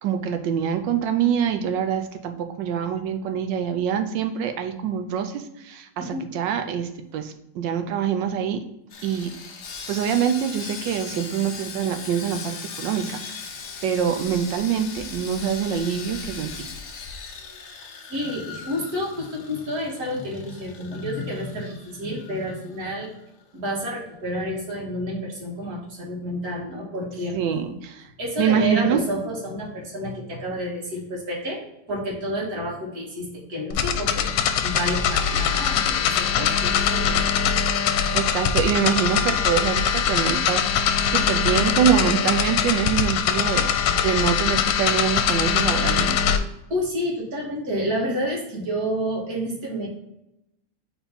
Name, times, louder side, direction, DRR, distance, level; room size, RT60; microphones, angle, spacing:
voice 1, 0.0-2.3 2.6-8.6 9.0-9.3 9.7-16.7 27.3-28.1 28.4-29.0 37.8-46.1, right 8 dB, 70° right, 7 dB, 1.1 m, -25 dB
Sawing, 8.9-23.2 23.4-23.6 24.1-24.2, left 5 dB, 60° left, 0.8 m, -39 dB
voice 2, 18.1-23.1 23.5-27.4 28.2-31.6 31.9-34.3 34.6-37.5 46.7-49.9, equal, 45° right, -2 dB, 2.1 m, -29 dB
sound 1, 33.7-46.4, left 7 dB, 90° left, 1.5 m, -22 dB
4.4 x 4.3 x 5.2 m, 0.86 s
omnidirectional pair, 2.4 m